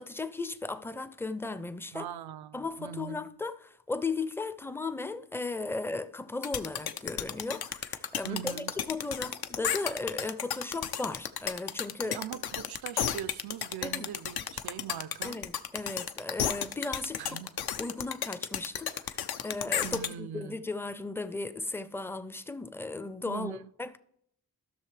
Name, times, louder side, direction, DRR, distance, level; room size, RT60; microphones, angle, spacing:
voice 1, 0.0-2.1 2.5-12.2 13.8-14.1 15.2-17.4 17.8-24.0, left 3 dB, 5° left, 0.4 m, -36 dB
voice 2, 1.9-3.3 8.2-8.7 12.0-15.4 17.2-17.6 19.8-20.7 23.2-23.6, right 11 dB, 90° right, 0.5 m, -41 dB
sound 1, 6.4-20.1, left 9 dB, 80° left, 0.6 m, -33 dB
14.0 x 6.3 x 3.3 m
cardioid pair, 85°, 37 cm